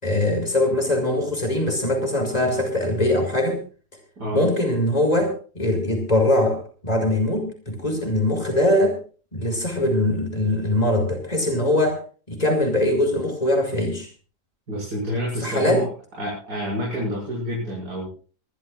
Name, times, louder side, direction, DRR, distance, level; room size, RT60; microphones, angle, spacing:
voice 1, 0.0-3.6 4.3-9.0 9.3-12.0 12.3-14.1 15.4-15.8, left 1 dB, 25° left, 4 dB, 5.9 m, -22 dB
voice 2, 14.7-15.9 16.2-18.1, equal, 75° right, -4 dB, 8.1 m, -28 dB
26.0 x 15.0 x 2.6 m, 0.38 s
omnidirectional pair, 1.7 m